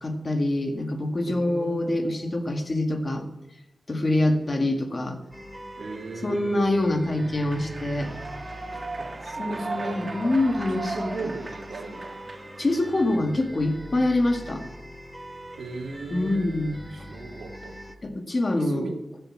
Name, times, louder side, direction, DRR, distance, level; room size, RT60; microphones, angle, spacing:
voice 1, 0.0-3.3 3.9-5.2 6.2-8.1 9.4-11.1 12.6-14.6 16.1-16.8 18.0-18.9, left 1 dB, 40° left, 4 dB, 2.0 m, -25 dB
voice 2, 1.2-2.7 5.8-6.5 9.0-10.0 10.8-12.2 15.6-16.6 16.9-17.7 18.5-18.9, right 3 dB, 85° right, 2 dB, 2.3 m, -37 dB
sound 1, 5.3-18.0, equal, 5° right, 2.4 m, -43 dB
Human voice / Clapping / Cheering, 7.2-13.2, right 3 dB, 45° right, 1.8 m, -37 dB
15.5 x 8.0 x 7.4 m, 0.95 s
cardioid pair, 65°, 0 cm